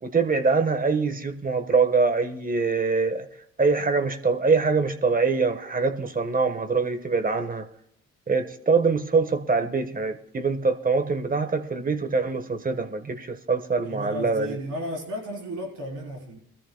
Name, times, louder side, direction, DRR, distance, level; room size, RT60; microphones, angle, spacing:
voice 1, 0.0-3.3 3.6-7.7 8.3-14.6, right 4 dB, 30° right, 9 dB, 1.3 m, -24 dB
voice 2, 13.8-16.4, equal, 85° right, 0 dB, 3.8 m, -34 dB
22.5 x 13.5 x 2.2 m, 0.69 s
cardioid pair, 90°, 30 cm